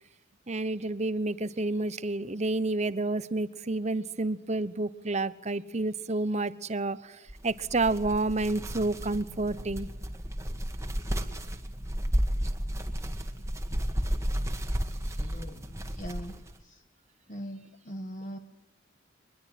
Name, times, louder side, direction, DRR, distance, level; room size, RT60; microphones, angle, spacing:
voice 1, 0.5-9.9, right 2 dB, 35° right, 15 dB, 0.9 m, -30 dB
sound 1, 7.3-16.6, equal, 15° right, 1.8 m, -33 dB
voice 2, 15.2-16.8 17.3-18.4, equal, 40° left, 6 dB, 1.4 m, -41 dB
23.5 x 21.0 x 9.1 m, 1.1 s
head